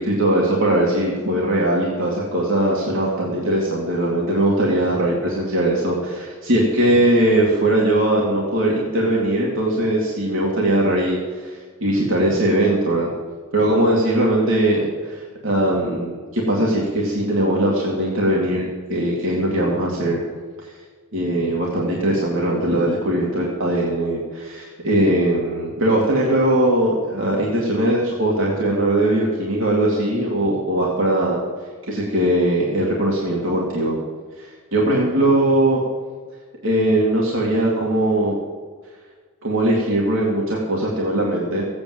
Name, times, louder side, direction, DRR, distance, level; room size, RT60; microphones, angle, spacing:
voice 1, 0.0-13.1 13.5-20.2 20.6-20.7 21.1-31.4 31.9-33.9 34.4-35.8 36.6-38.4 39.4-41.7, right 1 dB, 60° right, -3 dB, 2.3 m, -20 dB
15.5 x 8.7 x 7.9 m, 1.5 s
head